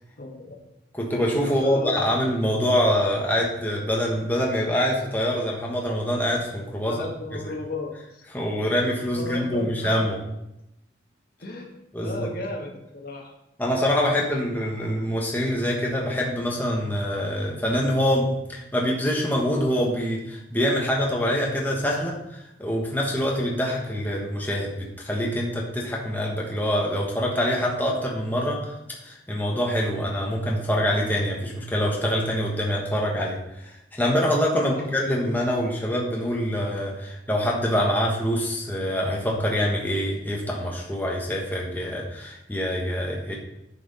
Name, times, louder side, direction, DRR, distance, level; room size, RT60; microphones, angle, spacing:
voice 1, 0.2-0.6 1.4-2.0 6.9-8.2 9.1-9.9 11.4-11.7 12.0-13.3 34.6-34.9, left 2 dB, 55° left, 1 dB, 1.5 m, -34 dB
voice 2, 0.9-7.0 7.4-7.5 8.3-10.2 11.9-12.3 13.6-28.7 29.0-33.4 33.9-43.3, equal, 10° left, -2 dB, 1.4 m, -25 dB
10.5 x 5.9 x 4.2 m, 0.87 s
head